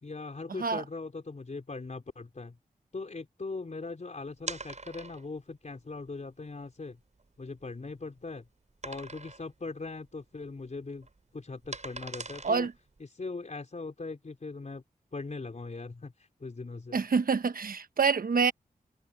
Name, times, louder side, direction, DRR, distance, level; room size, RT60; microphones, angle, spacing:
voice 1, 0.0-2.6 2.9-7.0 7.4-8.4 8.8-11.1 11.3-12.7 13.0-14.8 15.1-17.0, left 3 dB, 50° left, 4.4 m, -40 dB
sound 1, 4.4-5.4 6.1-6.2 6.6-6.7 7.2-8.2 8.8-9.5 9.9-10.1 10.4-13.0, right 3 dB, 50° right, 6.1 m, -42 dB
voice 2, 16.9-18.5, right 5 dB, 70° right, 1.1 m, -26 dB
wide cardioid pair, 70°, 15 cm